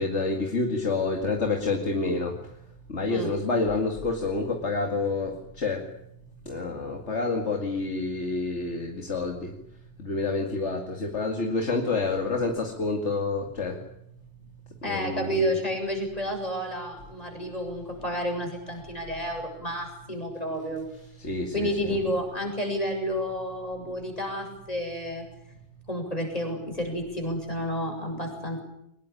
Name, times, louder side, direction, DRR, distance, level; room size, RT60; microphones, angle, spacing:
voice 1, 0.0-2.4 2.9-5.9 6.5-9.5 10.0-13.8 14.8-15.5 21.2-22.0, left 3 dB, 85° left, 3 dB, 2.7 m, -28 dB
voice 2, 14.8-20.9 21.5-25.3 25.9-28.6, equal, 35° left, 3 dB, 7.6 m, -30 dB
24.0 x 20.0 x 9.9 m, 0.77 s
omnidirectional pair, 1.1 m